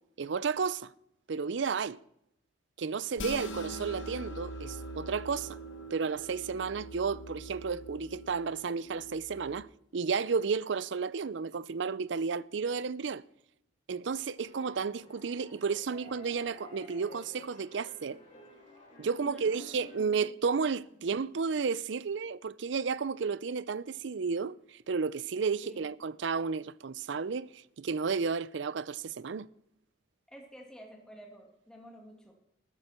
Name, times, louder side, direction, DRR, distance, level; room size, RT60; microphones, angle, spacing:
voice 1, 0.2-0.9 1.3-2.0 2.8-5.6 5.9-9.7 9.9-13.2 13.9-18.2 19.0-27.5 27.8-29.5, right 5 dB, 70° right, 0.5 m, -32 dB
sound 1, 3.2-9.6, right 1 dB, 80° left, 1.3 m, -43 dB
sound 2, 14.4-20.0, left 2 dB, 35° left, 4.2 m, -53 dB
voice 2, 19.1-20.3 25.6-25.9 30.3-32.3, equal, 5° left, 2.4 m, -50 dB
14.5 x 13.0 x 4.4 m
head